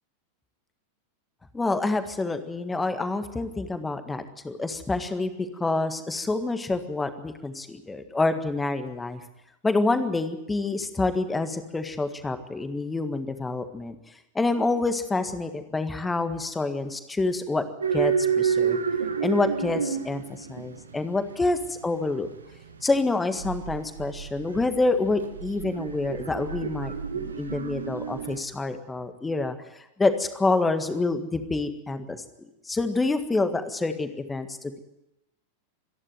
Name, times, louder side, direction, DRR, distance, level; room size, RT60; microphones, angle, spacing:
voice 1, 1.5-5.3 5.6-9.2 9.6-13.9 14.3-17.6 17.9-18.8 19.2-22.3 22.8-34.8, left 3 dB, 10° left, 9 dB, 1.7 m, -27 dB
sound 1, 17.8-28.4, right 7 dB, 75° right, 1.6 m, -30 dB
26.0 x 11.0 x 9.3 m, 0.91 s
figure-of-eight pair, 90°, 0 cm